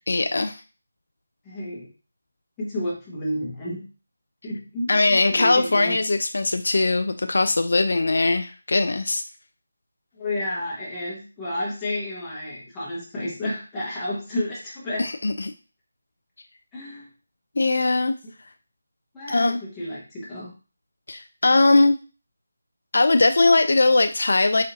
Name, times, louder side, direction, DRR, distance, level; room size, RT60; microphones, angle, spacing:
voice 1, 0.1-0.6 4.9-9.2 15.0-15.5 17.6-18.2 19.3-19.6 21.1-22.0 22.9-24.6, left 3 dB, 65° left, 8 dB, 0.3 m, -20 dB
voice 2, 1.4-1.9 2.6-3.8 4.4-5.9 10.1-15.1 16.7-17.1 19.1-20.5, left 1 dB, 10° left, -7 dB, 1.2 m, -31 dB
4.3 x 3.6 x 2.6 m, 0.34 s
figure-of-eight pair, 170°, 0 cm